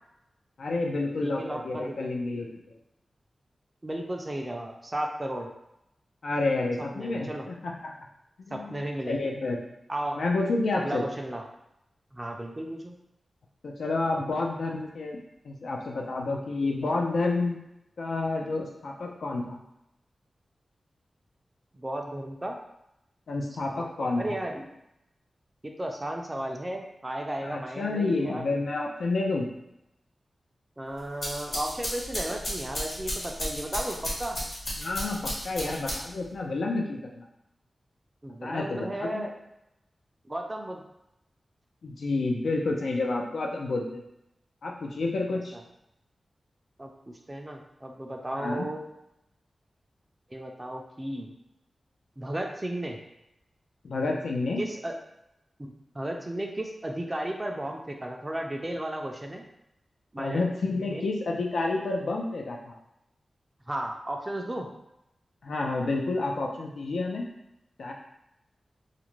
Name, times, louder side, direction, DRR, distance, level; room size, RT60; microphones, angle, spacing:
voice 1, 0.6-2.7 6.2-7.9 8.4-9.6 10.2-11.1 13.6-17.6 18.0-19.6 23.3-24.3 27.4-29.5 34.8-37.2 38.4-39.3 41.8-44.0 44.6-45.5 48.3-48.7 53.8-54.6 60.2-62.8 65.4-67.3 67.8-67.9, left 3 dB, 85° left, -1 dB, 0.4 m, -29 dB
voice 2, 1.2-2.1 3.8-5.5 6.9-7.5 8.5-9.3 9.9-10.2 10.8-11.4 12.1-12.9 21.7-22.6 23.7-23.9 24.2-24.6 25.6-28.4 30.8-34.4 38.2-39.4 40.3-40.8 45.5-45.6 46.8-46.9 47.3-48.8 50.3-51.3 52.2-53.0 54.6-55.0 55.6-59.4 60.1-60.5 60.9-61.0 63.7-64.7, right 1 dB, 25° right, 2 dB, 0.4 m, -34 dB
sound 1, 31.0-36.3, equal, 70° left, 1.1 m, -34 dB
2.5 x 2.1 x 3.0 m, 0.84 s
wide cardioid pair, 75°, 0 cm